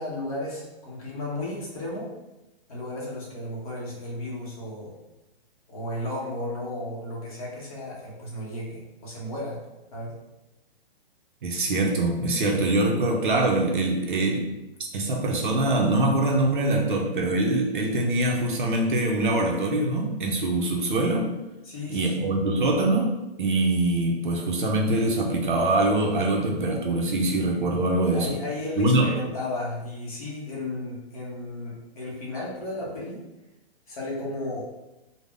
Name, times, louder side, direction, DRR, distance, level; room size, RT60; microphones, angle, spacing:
voice 1, 0.0-2.1 2.7-4.9 5.7-9.6 9.9-10.2 21.6-22.4 28.1-33.2 33.9-34.7, left 1 dB, 35° left, -5 dB, 0.7 m, -34 dB
voice 2, 11.4-14.5 14.9-21.3 21.9-23.1 23.4-28.4 28.8-29.1, right 2 dB, 55° right, 0 dB, 0.5 m, -23 dB
2.3 x 2.0 x 3.4 m, 0.99 s
hypercardioid pair, 165°, 32 cm